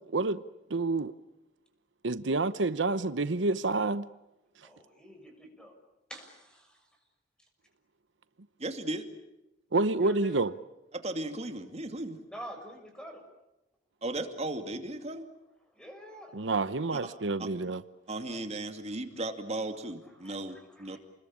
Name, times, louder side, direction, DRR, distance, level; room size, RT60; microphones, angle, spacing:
voice 1, 0.1-0.4 0.7-1.1 2.0-4.1 9.7-10.5 16.3-17.8, right 3 dB, 80° right, 0.9 m, -28 dB
voice 2, 4.6-5.7 6.1-6.8 10.0-10.4 12.3-13.2 15.7-16.4 18.3-18.4 20.2-21.0, equal, 5° left, 6.4 m, -47 dB
voice 3, 8.6-9.1 10.9-12.2 14.0-15.3 16.9-17.0 17.4-17.5 18.1-21.0, right 2 dB, 35° right, 2.5 m, -36 dB
29.5 x 21.0 x 8.7 m
head